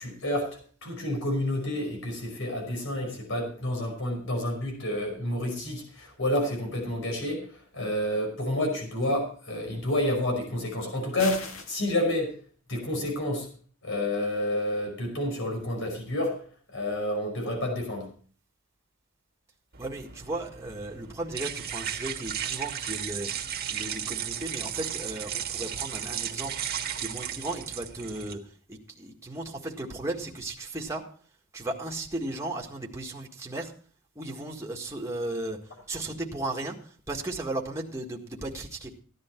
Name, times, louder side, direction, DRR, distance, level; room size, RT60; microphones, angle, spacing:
voice 1, 0.0-11.4 11.7-12.3 12.7-13.5 13.8-16.4 16.7-18.1, left 1 dB, 65° left, 2 dB, 5.3 m, -29 dB
sound 1, 11.2-11.8, left 4 dB, 80° left, 2.0 m, -36 dB
sound 2, 19.7-28.3, right 9 dB, 50° right, 1.5 m, -35 dB
voice 2, 19.8-26.6 27.0-31.1 31.5-33.7 34.2-35.6 35.9-38.9, right 2 dB, 15° right, -1 dB, 1.7 m, -35 dB
15.0 x 10.5 x 4.4 m, 0.43 s
head